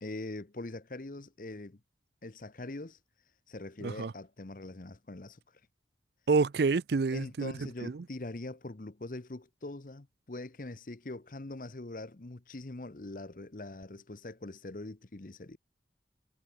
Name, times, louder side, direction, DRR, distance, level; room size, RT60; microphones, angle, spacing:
voice 1, 0.0-1.8 2.2-3.0 3.5-5.4 7.1-15.6, left 2 dB, 50° left, 0.9 m, -42 dB
voice 2, 6.3-7.5 7.8-8.0, right 4 dB, 70° right, 0.5 m, -28 dB
head